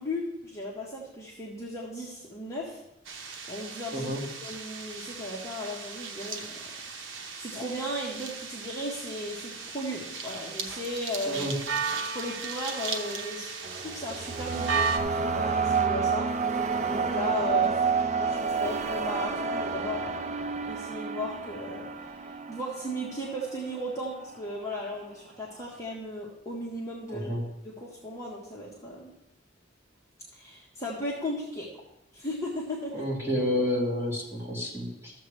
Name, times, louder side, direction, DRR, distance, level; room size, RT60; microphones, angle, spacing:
voice 1, 0.0-2.8 3.5-4.1 4.4-6.7 7.4-11.5 12.1-16.3 16.9-17.8 18.2-20.3 20.6-27.3 27.6-29.1 30.3-31.7 32.1-33.0, left 1 dB, 15° left, -4 dB, 1.5 m, -36 dB
sound 1, 3.0-15.0, right 5 dB, 85° right, 0.9 m, -36 dB
voice 2, 3.9-4.2 11.2-11.5 27.1-27.4 32.9-35.1, equal, 15° right, -6 dB, 2.6 m, -30 dB
sound 2, 13.6-23.9, right 5 dB, 40° right, 0.5 m, -29 dB
13.5 x 7.3 x 3.3 m, 0.88 s
head